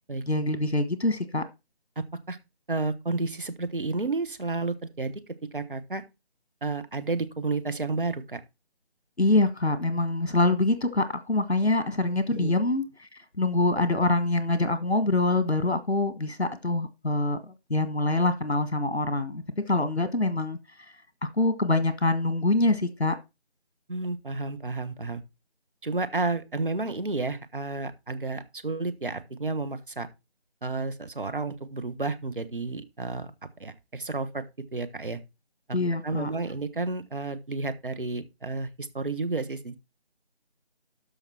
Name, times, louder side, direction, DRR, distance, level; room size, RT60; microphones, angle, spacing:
voice 1, 0.3-1.4 9.2-12.9 13.4-20.6 21.2-23.1 35.7-36.3, left 2 dB, 80° left, 1.5 m, -25 dB
voice 2, 2.0-2.4 2.7-6.0 6.6-8.4 12.3-12.5 23.9-25.2 25.8-30.1 30.6-33.3 33.6-34.4 34.7-35.2 35.7-35.8 36.0-39.8, right 3 dB, 55° right, 1.3 m, -31 dB
13.0 x 5.0 x 4.4 m
figure-of-eight pair, 160°, 32 cm